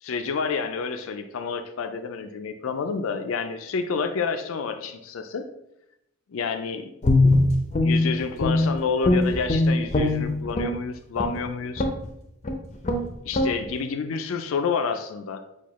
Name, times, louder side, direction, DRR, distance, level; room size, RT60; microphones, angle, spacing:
voice 1, 0.0-5.5 6.3-6.9 7.3-7.5 7.8-11.9 13.2-15.4, left 5 dB, 85° left, 8 dB, 0.4 m, -29 dB
Guitar, 7.0-8.7 9.0-10.8 11.2-11.4 11.8-12.1 12.4-12.6 12.8-13.0 13.3-13.5, left 2 dB, 35° left, 0.5 m, -21 dB
4.6 x 2.3 x 4.1 m, 0.83 s
head